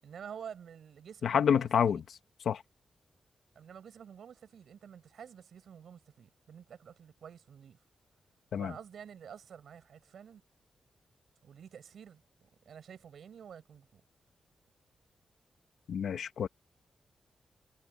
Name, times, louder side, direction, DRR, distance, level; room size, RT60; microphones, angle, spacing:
voice 1, 0.0-2.0 3.5-7.8 8.6-10.4 11.4-14.0, right 8 dB, 75° right, 7.4 m, -49 dB
voice 2, 1.2-2.0 2.4-2.6 8.5-8.7 15.9-16.5, left 7 dB, 80° left, 1.3 m, -28 dB
wide cardioid pair, 160°, 0 cm